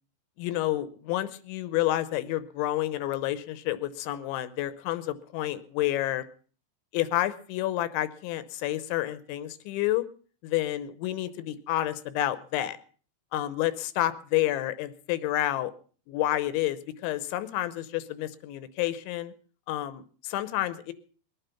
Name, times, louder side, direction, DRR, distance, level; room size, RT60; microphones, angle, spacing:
voice 1, 0.4-6.2 6.9-10.0 10.4-12.8 13.3-15.7 16.1-19.3 19.7-20.9, left 14 dB, 80° left, 14 dB, 3.1 m, -29 dB
21.0 x 9.2 x 5.6 m, 0.42 s
omnidirectional pair, 5.3 m